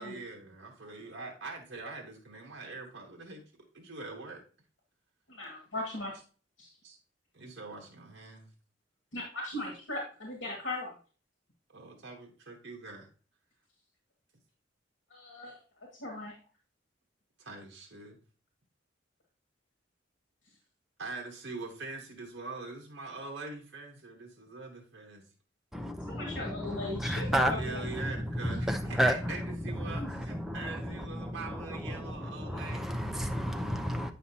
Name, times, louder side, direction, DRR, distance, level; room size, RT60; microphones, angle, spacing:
voice 1, 0.0-3.4 3.7-4.4 6.8-7.0 7.3-8.5 11.7-13.1 17.4-18.2 21.0-25.2 27.5-32.9, right 3 dB, 60° right, 1.1 m, -43 dB
voice 2, 5.3-6.1 6.6-6.7 9.1-10.9 15.1-15.6 16.0-16.3 26.1-27.8, left 2 dB, 75° left, 2.0 m, -38 dB
voice 3, 25.7-34.1, equal, ahead, 0.6 m, -32 dB
8.7 x 5.6 x 2.8 m
head